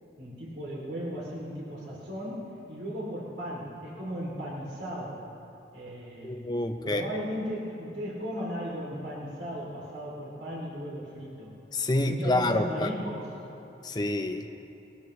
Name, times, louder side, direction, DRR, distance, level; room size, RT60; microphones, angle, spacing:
voice 1, 0.2-5.2 5.7-6.4 6.8-11.5 12.0-13.3, equal, 70° right, -5 dB, 3.1 m, -36 dB
voice 2, 6.2-7.1 11.7-12.9 13.8-14.5, left 1 dB, 20° left, 5 dB, 0.7 m, -27 dB
21.0 x 14.0 x 3.3 m, 3.0 s
head